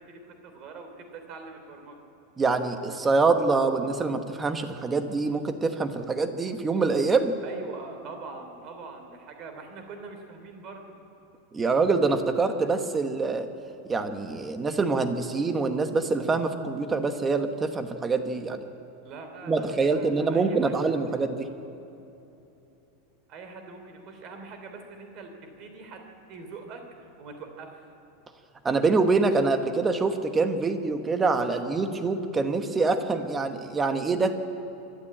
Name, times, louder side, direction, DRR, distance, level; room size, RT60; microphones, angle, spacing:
voice 1, 0.0-2.0 7.4-10.9 19.0-21.0 23.3-27.7, right 4 dB, 35° right, 5 dB, 3.1 m, -43 dB
voice 2, 2.4-7.4 11.5-13.5 13.9-18.6 19.5-21.5 28.6-34.3, right 3 dB, 15° right, 8 dB, 1.1 m, -25 dB
25.5 x 12.5 x 8.8 m, 3.0 s
supercardioid pair, 165°, 0 cm